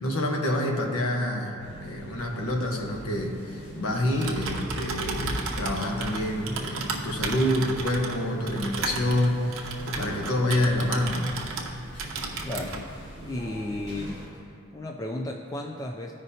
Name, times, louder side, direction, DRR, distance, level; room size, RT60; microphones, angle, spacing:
voice 1, 0.0-11.4, left 1 dB, 70° left, 1 dB, 1.1 m, -27 dB
sound 1, 1.6-14.3, right 1 dB, 50° left, 1.9 m, -43 dB
Typing, 4.0-11.7 12.0-12.8, right 3 dB, 60° right, 0.8 m, -34 dB
voice 2, 12.4-14.3 14.7-16.1, left 1 dB, 15° left, 1 dB, 0.3 m, -34 dB
14.5 x 5.0 x 2.7 m, 2.4 s
head